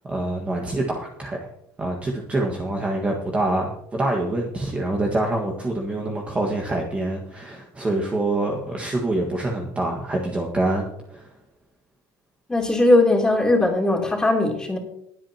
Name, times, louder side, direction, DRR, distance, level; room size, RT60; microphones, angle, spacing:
voice 1, 0.1-1.5 1.8-11.3, right 2 dB, 15° right, 0 dB, 1.6 m, -26 dB
voice 2, 12.5-14.8, left 2 dB, 10° left, -1 dB, 3.2 m, -19 dB
20.5 x 8.8 x 2.9 m, 0.74 s
cardioid pair, 155°, 8 cm